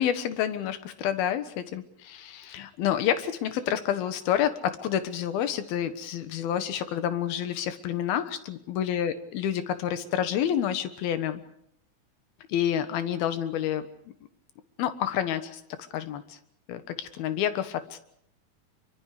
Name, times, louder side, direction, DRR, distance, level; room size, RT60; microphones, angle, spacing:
voice 1, 0.0-11.4 12.5-13.8 14.8-15.6 15.9-16.4 16.7-18.0, left 10 dB, 90° left, 10 dB, 3.2 m, -29 dB
25.5 x 24.0 x 5.0 m, 0.69 s
omnidirectional pair, 4.2 m